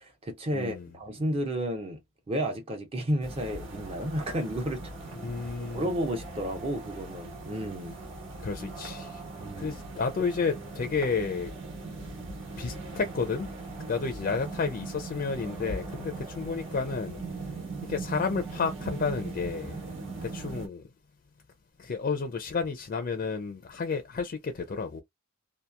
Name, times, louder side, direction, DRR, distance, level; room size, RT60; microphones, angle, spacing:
voice 1, 0.0-2.0 2.3-4.9 5.7-8.0 9.4-9.8, right 1 dB, 25° right, 0.5 m, -32 dB
voice 2, 0.5-0.9 5.2-5.9 8.4-9.2 9.6-11.5 12.6-13.5 13.8-20.9 21.8-25.0, left 5 dB, 40° left, 0.4 m, -31 dB
sound 1, 3.2-20.7, right 3 dB, 60° right, 1.2 m, -40 dB
2.8 x 2.3 x 2.2 m
head